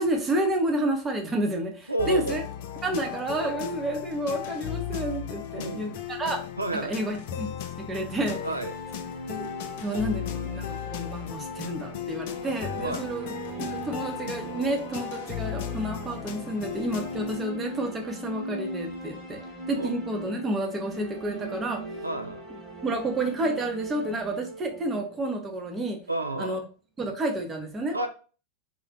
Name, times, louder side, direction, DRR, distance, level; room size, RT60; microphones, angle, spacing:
voice 1, 0.0-2.4 2.8-6.4 6.8-7.5 7.8-8.4 9.3-9.5 9.8-13.3 13.6-19.4 19.7-21.8 22.8-26.0 26.4-26.6 27.0-28.0, right 1 dB, 20° right, 3 dB, 0.6 m, -30 dB
voice 2, 1.9-2.4 5.5-6.1 6.6-7.0 8.4-8.7 12.8-13.1 19.8-20.0 22.0-22.4 26.1-26.6 27.9-28.1, right 2 dB, 85° right, 6 dB, 0.3 m, -30 dB
sound 1, 2.0-17.4, left 11 dB, 50° left, 0.4 m, -36 dB
sound 2, 8.1-26.0, right 1 dB, 5° left, 1.2 m, -39 dB
2.4 x 2.1 x 3.7 m, 0.37 s
figure-of-eight pair, 90°, 0 cm